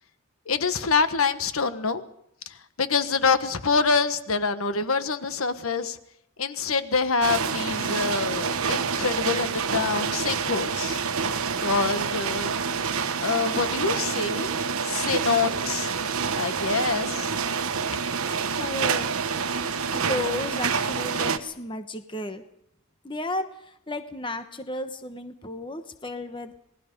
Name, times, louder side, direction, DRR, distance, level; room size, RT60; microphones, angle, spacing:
voice 1, 0.5-2.0 2.5-6.0 6.4-11.0 11.6-12.8 13.2-14.5 14.8-15.9 16.4-17.3, left 4 dB, 80° left, 11 dB, 1.3 m, -26 dB
sound 1, 7.2-21.4, right 6 dB, 85° right, 1.1 m, -27 dB
voice 2, 18.6-19.1 19.4-19.5 19.9-22.4 23.0-26.5, left 2 dB, 20° left, 8 dB, 1.1 m, -33 dB
27.0 x 19.0 x 5.3 m, 0.75 s
head